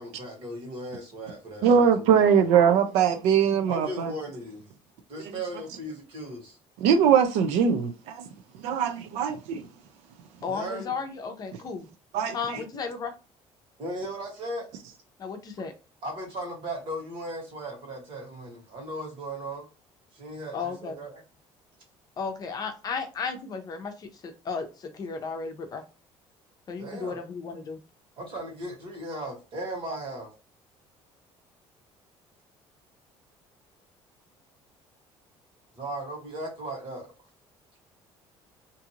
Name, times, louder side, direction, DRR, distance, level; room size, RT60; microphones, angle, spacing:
voice 1, 0.0-2.7 3.7-4.6 5.1-6.6 10.5-10.9 12.5-12.6 13.8-14.8 16.0-19.6 20.1-21.2 26.8-27.2 28.2-30.3 35.7-37.1, right 1 dB, 50° right, 1.5 m, -37 dB
voice 2, 1.6-4.1 6.8-8.2 8.6-9.6 12.1-12.6, right 7 dB, 90° right, 0.4 m, -21 dB
voice 3, 10.4-11.9 12.3-13.1 15.2-15.7 20.5-21.0 22.2-24.1 24.5-24.7 24.9-25.8 26.7-27.8, left 5 dB, 35° left, 0.6 m, -34 dB
2.6 x 2.5 x 2.8 m
cardioid pair, 140°, 11 cm